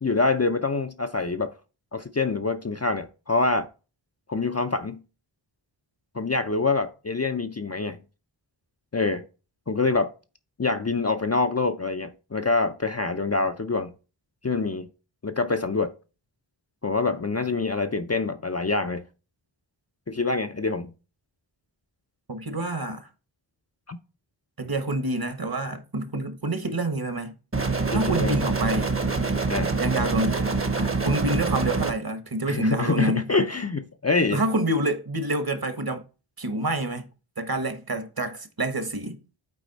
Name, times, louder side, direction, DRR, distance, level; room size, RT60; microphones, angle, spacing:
voice 1, 0.0-1.5 1.9-3.7 4.3-5.0 6.1-8.0 8.9-9.2 9.7-10.1 10.6-13.9 14.4-14.9 15.2-15.9 16.8-19.0 20.1-20.9 23.9-24.0 27.9-28.4 29.5-29.8 32.5-34.4, left 3 dB, 30° left, 0.5 m, -25 dB
voice 2, 22.3-23.1 24.6-27.3 27.9-28.9 29.8-33.3 34.3-36.0 36.4-37.1 37.4-39.2, right 1 dB, 45° right, 1.2 m, -27 dB
sound 1, 27.5-31.9, right 4 dB, 25° right, 0.9 m, -25 dB
8.3 x 4.2 x 4.0 m
wide cardioid pair, 40°, 50 cm